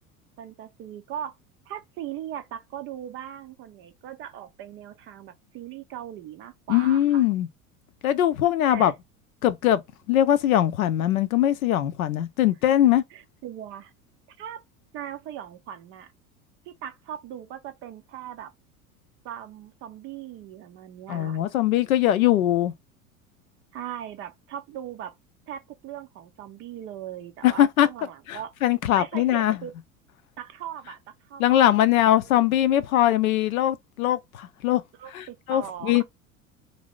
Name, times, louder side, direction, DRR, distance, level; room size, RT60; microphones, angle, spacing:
voice 1, 0.4-1.3 1.7-7.2 8.7-8.9 13.1-13.9 14.3-14.6 14.9-16.1 16.7-18.5 19.2-21.4 23.7-25.2 25.5-28.5 29.0-29.7 30.4-32.5 35.0-36.0, right 10 dB, 30° right, 0.4 m, -39 dB
voice 2, 6.7-7.5 8.0-8.9 9.4-9.8 10.1-13.0 21.1-22.7 27.4-27.9 28.3-29.6 31.4-34.8 35.1-36.0, left 12 dB, 70° left, 0.6 m, -21 dB
2.6 x 2.6 x 3.1 m
figure-of-eight pair, 75°, 44 cm